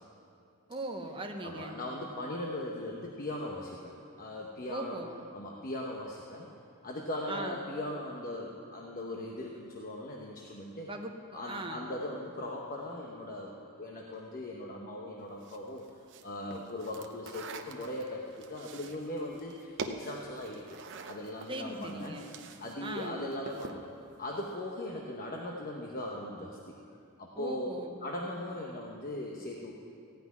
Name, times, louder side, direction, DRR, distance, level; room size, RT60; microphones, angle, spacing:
voice 1, 0.7-1.8 4.7-5.2 7.3-7.6 10.9-11.1 11.5-11.9 21.5-22.3 22.8-23.2 27.3-28.0, right 1 dB, 25° right, 3 dB, 1.0 m, -39 dB
voice 2, 1.4-5.0 5.3-6.5 6.8-10.9 11.3-15.9 16.2-20.8 21.0-22.2 22.6-23.8 24.2-26.7 27.2-27.7 28.0-29.7, left 1 dB, 40° left, -1 dB, 1.0 m, -39 dB
sound 1, 15.4-22.7 23.0-23.9, right 4 dB, 55° right, 0.8 m, -45 dB
15.5 x 5.9 x 9.5 m, 2.5 s
head